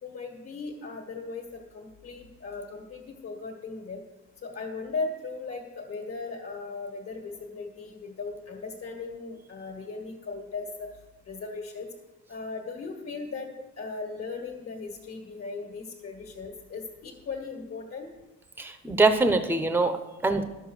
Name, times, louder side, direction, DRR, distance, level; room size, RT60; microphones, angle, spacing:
voice 1, 0.0-4.0 4.4-10.9 11.2-11.9 12.3-13.5 13.8-18.1, left 4 dB, 55° left, 1 dB, 1.6 m, -37 dB
voice 2, 18.6-20.4, right 3 dB, 5° right, 8 dB, 0.7 m, -24 dB
12.0 x 6.9 x 6.4 m, 1.1 s
wide cardioid pair, 180°, 30 cm